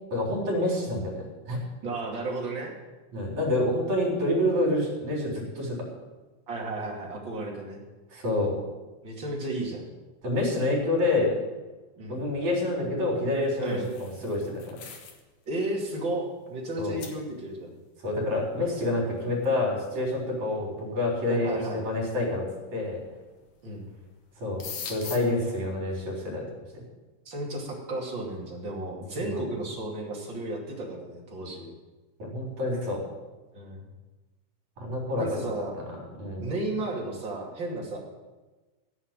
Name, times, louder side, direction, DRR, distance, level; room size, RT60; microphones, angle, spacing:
voice 1, 0.1-1.6 3.1-5.8 8.1-8.5 10.2-11.4 12.1-14.8 16.8-17.0 18.0-23.0 24.4-26.5 29.2-29.4 32.2-33.0 34.8-35.5 36.2-36.4, left 1 dB, 65° right, -2 dB, 5.2 m, -28 dB
voice 2, 1.8-2.7 6.5-7.8 9.0-9.8 12.0-12.2 13.6-13.9 15.4-17.7 21.3-21.9 23.6-23.9 27.2-31.7 33.5-33.8 35.2-35.8 36.4-38.0, right 2 dB, 40° right, -1 dB, 3.2 m, -33 dB
sound 1, 13.5-15.3 15.6-15.8 16.5-16.6 17.0-17.2 19.4-19.5 20.5-20.6 21.3-21.8 23.0-23.5 23.8-24.0 24.2-25.2, left 7 dB, 70° left, 2.8 m, -41 dB
15.5 x 6.9 x 9.1 m, 1.2 s
omnidirectional pair, 3.6 m